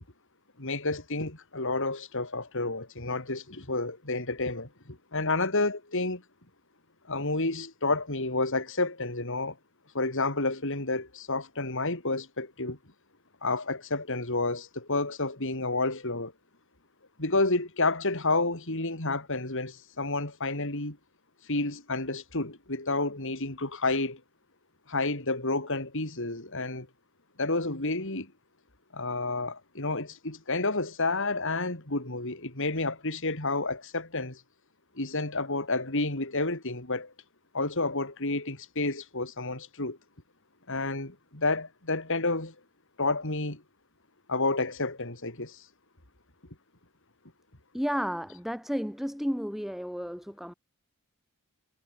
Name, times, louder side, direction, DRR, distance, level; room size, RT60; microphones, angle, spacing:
voice 1, 0.6-6.2 7.1-9.6 9.9-12.8 13.4-16.3 17.2-21.0 21.5-24.2 24.9-26.9 27.4-28.3 28.9-34.4 34.9-37.1 37.5-40.0 40.7-42.5 43.0-43.6 44.3-45.6, left 2 dB, 60° left, 4.9 m, -30 dB
voice 2, 47.7-50.5, equal, ahead, 4.3 m, -32 dB
head